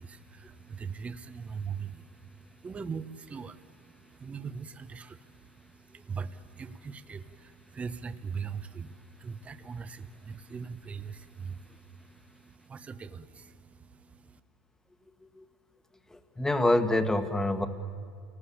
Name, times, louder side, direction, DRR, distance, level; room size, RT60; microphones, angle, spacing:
voice 1, 0.0-14.4, right 6 dB, 25° right, 10 dB, 1.2 m, -41 dB
voice 2, 16.1-17.7, left 1 dB, 10° left, 8 dB, 1.8 m, -26 dB
29.0 x 19.0 x 8.6 m, 2.3 s
supercardioid pair, 110°, 5 cm